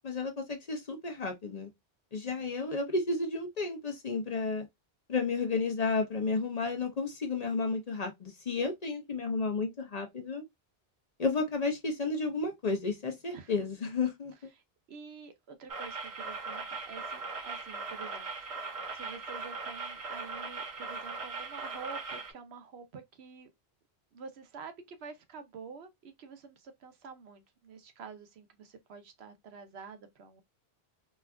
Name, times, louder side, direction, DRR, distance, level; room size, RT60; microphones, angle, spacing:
voice 1, 0.0-1.7 2.1-4.7 5.1-10.4 11.2-14.3, left 4 dB, 45° left, 0.7 m, -32 dB
voice 2, 13.3-13.7 14.9-18.6 18.9-23.5 24.1-30.4, right 5 dB, 75° right, 1.0 m, -48 dB
sound 1, 15.7-22.3, right 4 dB, 35° right, 0.7 m, -39 dB
4.2 x 2.3 x 2.3 m
omnidirectional pair, 1.1 m